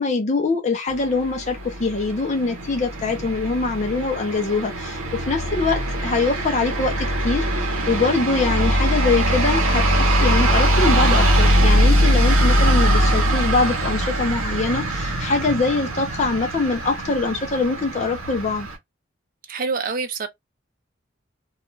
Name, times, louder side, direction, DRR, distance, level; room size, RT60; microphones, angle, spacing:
voice 1, 0.0-18.7, left 3 dB, 35° left, 0.5 m, -23 dB
passing cars, 0.9-18.8, right 1 dB, 90° right, 0.8 m, -21 dB
voice 2, 19.5-20.3, right 4 dB, 45° right, 0.5 m, -26 dB
2.3 x 2.3 x 3.0 m
head